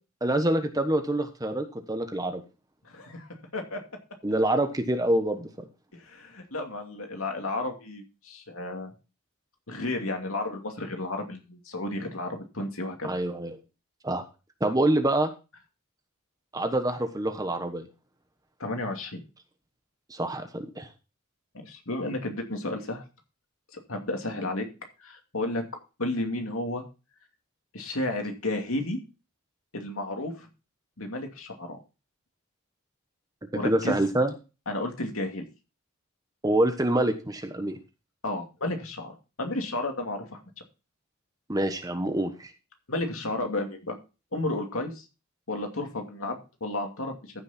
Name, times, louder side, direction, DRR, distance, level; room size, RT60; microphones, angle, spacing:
voice 1, 0.2-2.4 4.2-5.5 13.0-13.5 14.0-14.2 14.6-15.3 16.5-17.9 20.1-20.9 33.6-34.3 36.4-37.8 41.5-42.5, right 1 dB, 15° right, 7 dB, 1.1 m, -26 dB
voice 2, 2.8-3.8 6.1-8.9 9.7-13.2 18.6-19.2 21.7-23.0 23.9-24.7 25.0-25.6 26.0-26.8 27.7-29.0 29.7-30.5 31.0-31.8 33.5-34.0 34.7-35.4 38.2-40.4 42.9-44.0 44.3-45.0 45.5-47.1, left 2 dB, 70° left, 4 dB, 2.6 m, -32 dB
14.5 x 6.4 x 4.2 m, 0.30 s
head